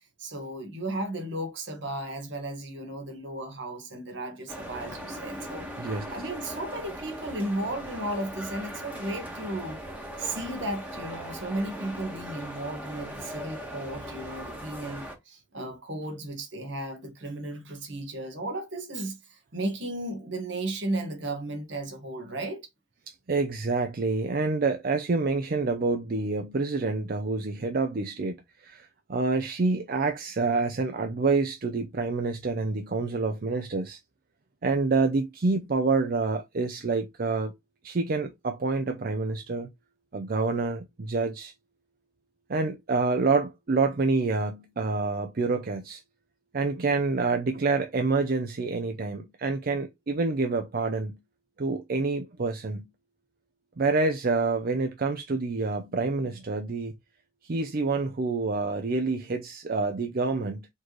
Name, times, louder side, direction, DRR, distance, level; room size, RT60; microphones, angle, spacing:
voice 1, 0.2-9.8 10.2-22.7, right 1 dB, 70° right, 1.3 m, -35 dB
sound 1, 4.5-15.1, equal, 10° right, 1.3 m, -39 dB
voice 2, 5.8-6.2 23.1-34.0 34.6-37.5 37.8-39.7 40.1-41.5 42.5-46.0 46.5-51.2 51.6-52.9 53.8-56.9 57.4-60.7, right 3 dB, 50° right, 0.5 m, -27 dB
4.3 x 3.1 x 3.0 m
head